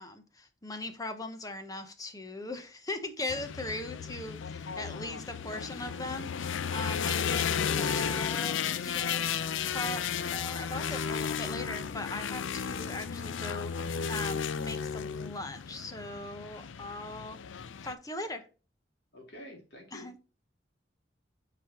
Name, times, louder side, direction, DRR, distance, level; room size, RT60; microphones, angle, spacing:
voice 1, 0.0-9.3 9.7-18.5 19.9-20.1, left 2 dB, 20° left, 0.9 m, -40 dB
sound 1, 3.3-17.9, left 7 dB, 90° left, 0.5 m, -34 dB
voice 2, 4.7-5.0 19.1-20.1, equal, 60° left, 3.3 m, -48 dB
8.4 x 5.0 x 2.9 m
head